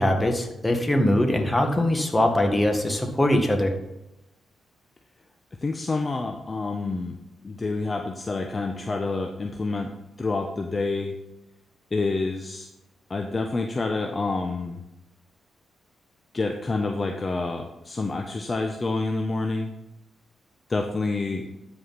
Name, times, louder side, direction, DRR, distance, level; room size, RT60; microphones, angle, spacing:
voice 1, 0.0-3.7, left 1 dB, 20° left, 4 dB, 1.8 m, -22 dB
voice 2, 5.6-7.2 7.4-11.2 11.9-12.7 13.1-14.8 16.3-19.7 20.7-21.5, left 3 dB, 35° left, 3 dB, 0.9 m, -28 dB
12.5 x 5.0 x 4.2 m, 0.90 s
supercardioid pair, 60°, 0 cm